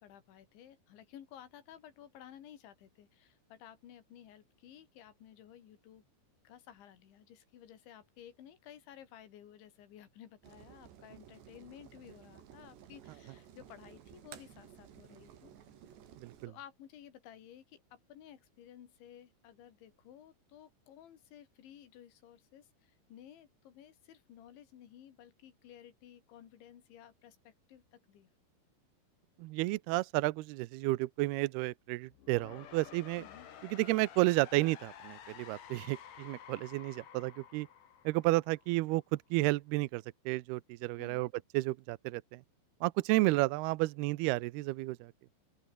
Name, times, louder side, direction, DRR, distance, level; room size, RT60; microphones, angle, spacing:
voice 1, 0.0-6.0 6.4-15.5 16.5-28.3 33.2-33.5 41.0-41.3, left 10 dB, 80° left, 4.8 m, -55 dB
sound 1, 10.4-16.5, right 9 dB, 70° right, 4.8 m, -55 dB
voice 2, 16.2-16.5 29.4-33.2 33.6-37.7 38.1-41.3 41.5-42.4 42.8-45.1, right 20 dB, 90° right, 2.3 m, -32 dB
sound 2, 32.1-39.0, left 9 dB, 50° left, 3.4 m, -52 dB
open air
omnidirectional pair, 5.3 m